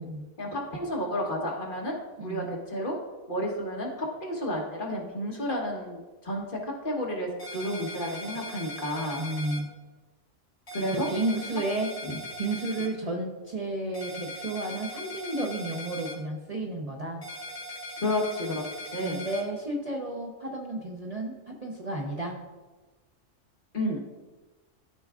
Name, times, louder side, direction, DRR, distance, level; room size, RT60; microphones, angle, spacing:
voice 1, 0.4-1.9 2.2-2.9 3.3-9.2 10.7-11.1 12.1-12.2 18.0-18.6 18.9-19.2 23.7-24.0, equal, 45° left, -2 dB, 1.4 m, -31 dB
voice 2, 2.2-2.5 9.2-9.7 10.9-11.9 12.4-17.2 19.0-22.4, right 2 dB, 35° right, -1 dB, 0.7 m, -32 dB
sound 1, 7.4-9.6 10.7-12.9 13.9-16.1 17.2-19.4, left 1 dB, 70° left, 2.5 m, -40 dB
13.0 x 4.6 x 2.4 m, 1.2 s
omnidirectional pair, 1.3 m